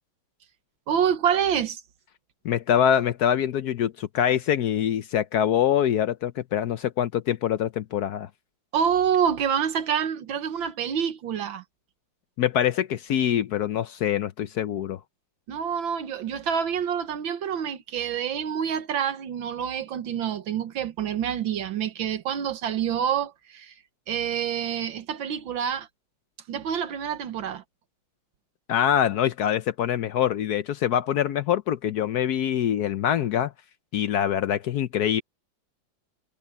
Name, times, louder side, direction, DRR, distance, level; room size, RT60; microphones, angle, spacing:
voice 1, 0.9-1.8 8.7-11.6 15.5-23.8 24.1-25.9 26.5-27.6, right 8 dB, 80° right, 1.9 m, -27 dB
voice 2, 2.4-8.3 12.4-15.0 28.7-33.5 33.9-35.2, left 10 dB, 65° left, 1.0 m, -24 dB
omnidirectional pair, 2.1 m